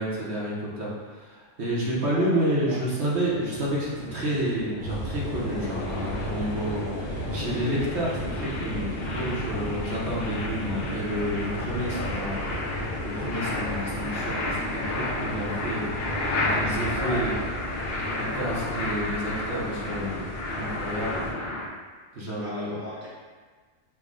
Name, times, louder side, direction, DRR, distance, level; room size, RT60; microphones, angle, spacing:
voice 1, 0.0-17.3 18.2-20.3 20.6-21.3 22.1-22.8, right 1 dB, 60° right, -6 dB, 1.1 m, -30 dB
voice 2, 2.1-2.8 11.7-12.0 16.9-17.2 22.4-23.1, left 1 dB, 10° right, -8 dB, 0.8 m, -38 dB
sound 1, 2.8-21.7, left 2 dB, 60° left, 0.7 m, -32 dB
sound 2, 4.8-21.3, right 1 dB, 75° left, 1.3 m, -37 dB
5.6 x 2.1 x 3.7 m, 1.5 s
omnidirectional pair, 1.3 m